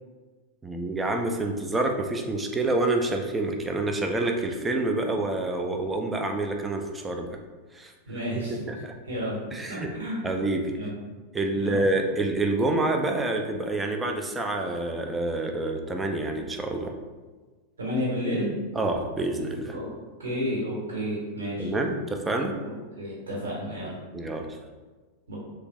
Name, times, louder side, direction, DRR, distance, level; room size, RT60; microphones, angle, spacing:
voice 1, 0.6-7.3 7.7-7.9 8.7-8.9 9.5-9.9 10.2-10.7 11.3-16.9 18.7-19.8 21.6-22.6 24.1-24.6, right 2 dB, 15° right, 3 dB, 0.3 m, -27 dB
voice 2, 8.0-8.6 9.1-9.4 9.9-10.3 10.7-10.9 11.5-11.8 17.8-18.5 19.7-19.9 20.2-21.7 22.6-23.9 25.3-25.4, equal, 70° right, -6 dB, 1.2 m, -31 dB
3.2 x 2.3 x 3.1 m, 1.3 s
figure-of-eight pair, 90°, 0 cm